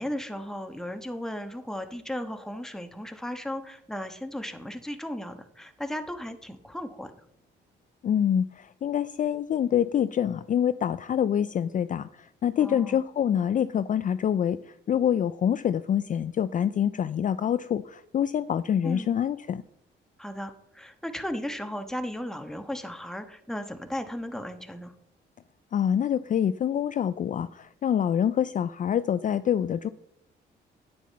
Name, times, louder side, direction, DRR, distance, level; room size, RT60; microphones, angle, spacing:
voice 1, 0.0-7.1 12.6-13.0 18.8-19.1 20.2-24.9, left 1 dB, ahead, 6 dB, 1.2 m, -35 dB
voice 2, 8.0-14.6 14.9-19.6 25.7-29.9, left 9 dB, 40° left, 13 dB, 0.4 m, -26 dB
9.4 x 9.3 x 4.2 m, 0.75 s
cardioid pair, 90°, 20 cm